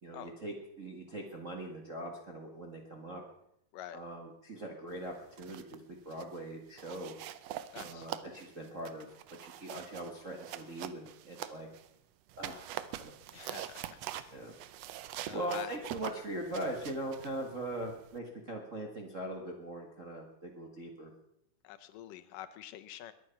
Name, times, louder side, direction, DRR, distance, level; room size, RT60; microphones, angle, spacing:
voice 1, 0.0-3.2 3.9-7.1 7.8-11.7 12.4-13.4 14.3-14.6 15.3-21.1, right 1 dB, 40° right, 1 dB, 1.1 m, -41 dB
sound 1, 5.2-5.8 6.1-6.4 6.8-11.9 12.3-18.2, right 12 dB, 85° right, 1.4 m, -44 dB
voice 2, 7.7-8.1 13.3-14.7 15.3-15.7 21.6-23.1, left 12 dB, 80° left, 11 dB, 2.4 m, -46 dB
21.5 x 9.4 x 5.8 m, 0.77 s
omnidirectional pair, 3.9 m